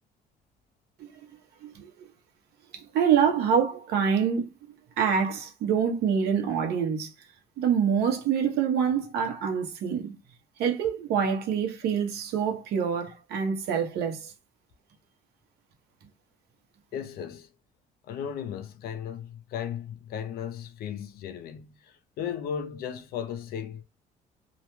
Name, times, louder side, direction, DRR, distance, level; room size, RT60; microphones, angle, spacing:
voice 1, 2.7-4.5 5.0-7.1 7.6-10.1 10.6-14.3, right 7 dB, 75° right, 0.8 m, -26 dB
voice 2, 16.9-17.5 18.1-21.7 22.2-23.8, left 8 dB, 65° left, 0.5 m, -35 dB
2.4 x 2.1 x 2.9 m
cardioid pair, 110°, 17 cm